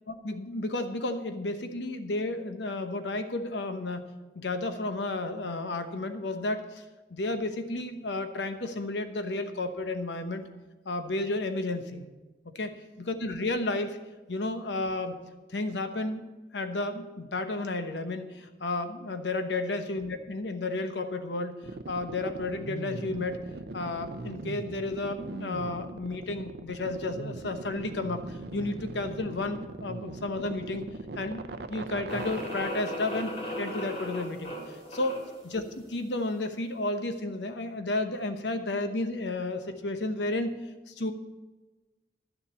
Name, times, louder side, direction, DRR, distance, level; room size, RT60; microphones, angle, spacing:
voice 1, 0.2-6.8 7.1-10.4 10.9-12.0 12.5-14.0 14.3-15.2 15.5-16.2 16.5-21.6 21.9-23.4 23.7-30.8 31.2-34.5 34.9-40.6 40.9-41.1, left 2 dB, 75° left, 8 dB, 1.0 m, -32 dB
sound 1, 21.6-32.7, right 2 dB, 65° right, 0.6 m, -39 dB
sound 2, 32.1-35.4, equal, 35° left, 3.2 m, -37 dB
11.5 x 7.1 x 6.9 m, 1.2 s
head